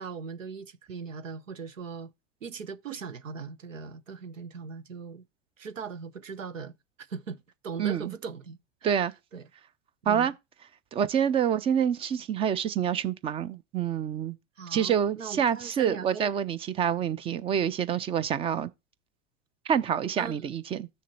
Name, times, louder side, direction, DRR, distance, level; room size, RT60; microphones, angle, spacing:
voice 1, 0.0-2.1 2.4-5.2 5.6-9.1 9.3-9.5 10.0-10.3 14.6-16.3 20.2-20.5, right 5 dB, 90° right, 0.7 m, -39 dB
voice 2, 7.8-8.1 8.8-9.1 10.1-10.3 10.9-14.4 14.7-18.7 19.7-20.9, right 8 dB, 15° right, 0.3 m, -27 dB
6.4 x 4.2 x 5.3 m
hypercardioid pair, 95°, 37 cm